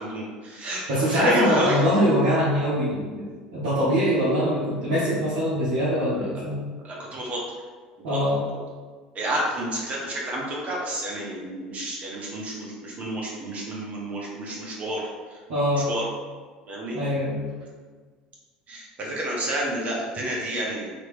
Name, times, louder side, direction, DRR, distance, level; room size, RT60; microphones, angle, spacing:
voice 1, 0.0-0.9 1.1-1.8 6.8-7.4 8.1-8.2 9.1-15.0 15.9-16.0 16.6-17.0 18.7-20.9, right 1 dB, 35° right, -3 dB, 1.1 m, -29 dB
voice 2, 0.9-3.3 3.5-6.6 8.0-8.4 15.5-15.9 16.9-17.4, equal, 60° right, -10 dB, 0.9 m, -23 dB
3.1 x 2.9 x 3.1 m, 1.5 s
figure-of-eight pair, 65°, 4 cm